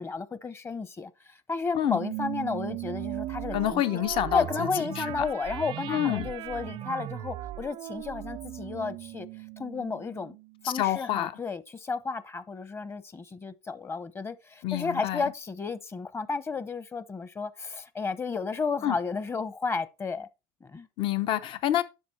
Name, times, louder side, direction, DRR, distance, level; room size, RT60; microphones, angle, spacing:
voice 1, 0.0-4.0 4.3-9.3 9.6-10.3 10.6-20.3 20.6-20.9, left 4 dB, 25° left, 0.9 m, -33 dB
sound 1, 2.0-10.7, right 15 dB, 60° right, 0.5 m, -38 dB
voice 2, 3.5-4.7 5.0-5.1 5.9-6.3 10.7-11.3 14.6-15.2 18.8-18.9 21.0-21.8, left 12 dB, 60° left, 0.9 m, -27 dB
10.5 x 6.0 x 4.3 m
cardioid pair, 110°, 10 cm